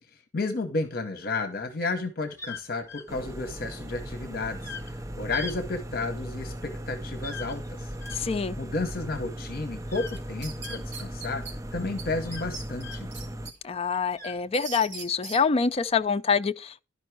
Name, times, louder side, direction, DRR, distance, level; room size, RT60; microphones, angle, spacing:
voice 1, 0.1-7.9 8.3-11.4 11.7-13.1, left 3 dB, 50° left, 0.9 m, -32 dB
sound 1, 2.3-13.3 13.6-15.0 15.7-16.1, left 4 dB, 15° left, 1.7 m, -43 dB
sound 2, 3.1-13.5, right 1 dB, 15° right, 0.5 m, -37 dB
voice 2, 8.1-8.6 13.6-16.8, left 5 dB, 30° left, 0.4 m, -26 dB
sound 3, 10.1-11.5 12.0-12.1 12.3-13.5 13.9-15.4, right 4 dB, 65° right, 3.3 m, -40 dB
12.0 x 5.4 x 4.6 m
head